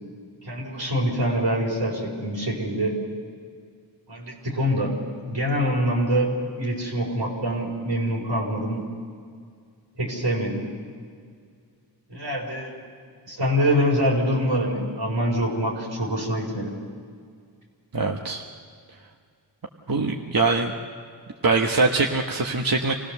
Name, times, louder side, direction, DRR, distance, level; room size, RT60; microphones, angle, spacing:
voice 1, 0.4-3.0 4.1-4.9 5.3-6.3 6.6-8.8 10.0-10.6 12.1-12.8 13.2-16.7, equal, 90° right, -2 dB, 4.7 m, -25 dB
voice 2, 17.9-18.4 19.9-20.7 21.4-23.0, right 3 dB, 55° right, 2 dB, 1.3 m, -22 dB
26.5 x 17.0 x 6.8 m, 2.1 s
wide cardioid pair, 50°, 42 cm